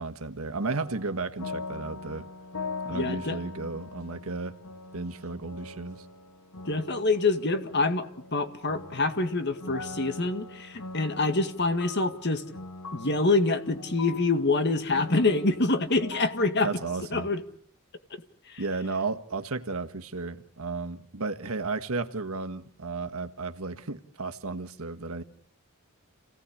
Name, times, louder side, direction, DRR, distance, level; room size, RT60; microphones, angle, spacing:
voice 1, 0.0-2.2 2.8-4.6 4.9-6.0 16.6-17.3 18.6-25.2, right 3 dB, 80° right, 1.5 m, -33 dB
sound 1, 0.6-17.0, left 3 dB, 85° left, 1.3 m, -42 dB
voice 2, 2.9-3.4 6.7-12.4 12.9-16.7 17.1-17.4 18.5-18.6, left 3 dB, 50° left, 2.0 m, -26 dB
28.5 x 18.0 x 8.5 m
head